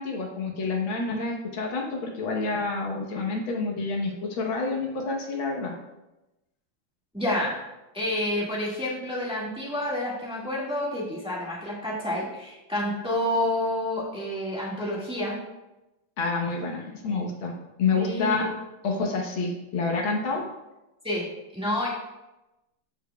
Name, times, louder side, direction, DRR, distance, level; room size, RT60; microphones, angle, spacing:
voice 1, 0.0-5.7 16.2-17.5 17.8-18.5 18.8-20.4, left 4 dB, 85° left, 0 dB, 1.9 m, -28 dB
voice 2, 7.1-7.6 7.9-15.4 17.9-18.5 21.0-21.3 21.5-21.9, left 1 dB, 5° right, -6 dB, 1.5 m, -29 dB
13.0 x 5.0 x 2.3 m, 0.97 s
omnidirectional pair, 2.1 m